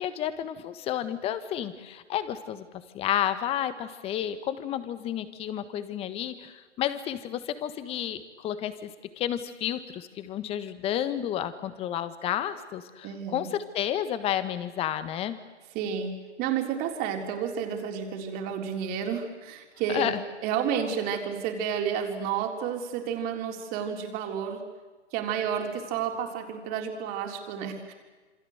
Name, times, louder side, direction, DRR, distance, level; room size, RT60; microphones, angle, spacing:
voice 1, 0.0-2.7 2.9-8.9 9.2-15.4 19.9-20.2, left 10 dB, 15° left, 12 dB, 1.4 m, -31 dB
voice 2, 13.0-13.5 15.7-16.1 16.4-20.1 20.4-24.6 25.1-27.9, right 7 dB, 25° right, 4 dB, 3.8 m, -31 dB
27.5 x 25.5 x 8.0 m, 1.3 s
hypercardioid pair, 135°, 35 cm